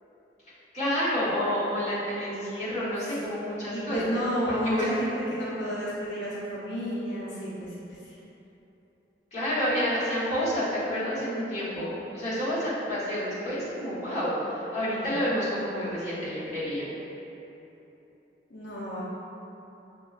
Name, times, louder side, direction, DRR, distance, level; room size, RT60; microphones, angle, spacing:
voice 1, 0.7-4.1 4.5-4.9 9.3-16.9, equal, 40° left, -11 dB, 1.2 m, -29 dB
voice 2, 3.7-8.1 14.9-15.1 18.5-19.0, equal, 85° left, -8 dB, 0.7 m, -31 dB
5.9 x 2.2 x 2.3 m, 3.0 s
head